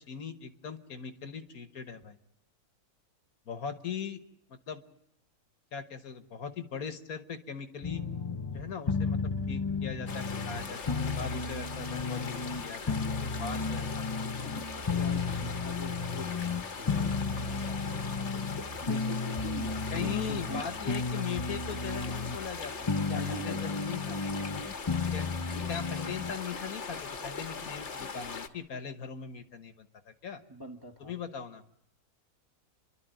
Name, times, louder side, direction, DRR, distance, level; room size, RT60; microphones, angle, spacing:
voice 1, 0.1-2.2 3.5-4.2 4.5-4.8 5.7-8.0 8.5-9.2 9.5-14.3 19.9-24.2 25.1-25.3 25.7-30.4 31.0-31.6, left 7 dB, 65° left, 10 dB, 1.6 m, -40 dB
sound 1, 7.8-26.3, left 4 dB, 30° left, 0.5 m, -33 dB
sound 2, 10.1-28.5, left 5 dB, 50° left, 1.4 m, -40 dB
voice 2, 14.9-20.9 23.1-23.6 30.5-31.1, left 1 dB, 15° right, 2 dB, 1.6 m, -44 dB
29.5 x 12.0 x 9.1 m, 0.82 s
omnidirectional pair, 1.7 m